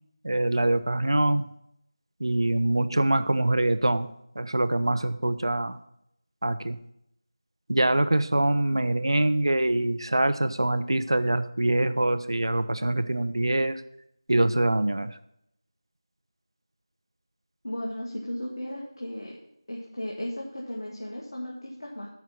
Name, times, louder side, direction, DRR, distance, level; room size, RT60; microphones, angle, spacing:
voice 1, 0.2-1.5 2.2-4.1 4.4-5.8 6.4-6.8 7.7-13.8 14.3-15.2, right 1 dB, 65° right, 11 dB, 0.6 m, -24 dB
voice 2, 17.6-19.4 19.7-22.1, left 1 dB, 65° left, -3 dB, 2.1 m, -35 dB
9.0 x 6.0 x 5.9 m, 0.76 s
figure-of-eight pair, 170°, 3 cm